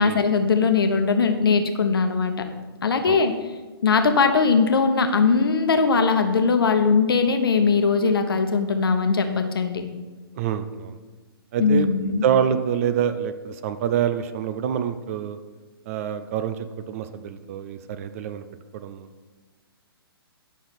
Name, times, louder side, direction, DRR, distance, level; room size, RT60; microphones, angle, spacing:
voice 1, 0.0-2.3 2.8-3.3 3.8-9.8 11.6-12.2, left 5 dB, 65° left, 6 dB, 1.1 m, -20 dB
voice 2, 10.3-11.0 11.5-11.9 12.2-15.4 15.9-18.4 18.7-19.1, right 9 dB, 35° right, 10 dB, 0.5 m, -26 dB
9.9 x 6.1 x 4.3 m, 1.3 s
figure-of-eight pair, 125°, 13 cm